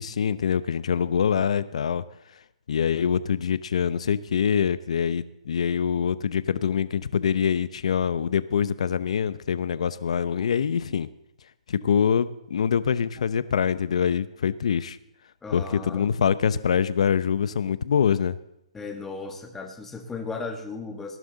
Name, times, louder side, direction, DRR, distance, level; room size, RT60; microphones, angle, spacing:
voice 1, 0.0-2.0 2.7-11.1 11.7-15.0 15.5-18.4, left 7 dB, 70° left, 15 dB, 0.8 m, -24 dB
voice 2, 15.4-16.1 18.7-21.2, left 4 dB, 10° left, 4 dB, 1.5 m, -36 dB
18.5 x 11.0 x 4.0 m, 0.83 s
hypercardioid pair, 155°, 4 cm